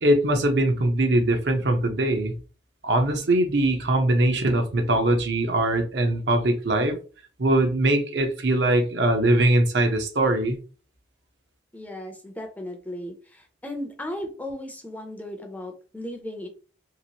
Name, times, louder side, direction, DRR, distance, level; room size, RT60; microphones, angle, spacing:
voice 1, 0.0-2.3 2.8-7.0 7.4-10.6, right 1 dB, 65° right, 0.7 m, -21 dB
voice 2, 11.7-16.5, left 1 dB, 10° left, 0.4 m, -36 dB
3.0 x 2.9 x 2.8 m
head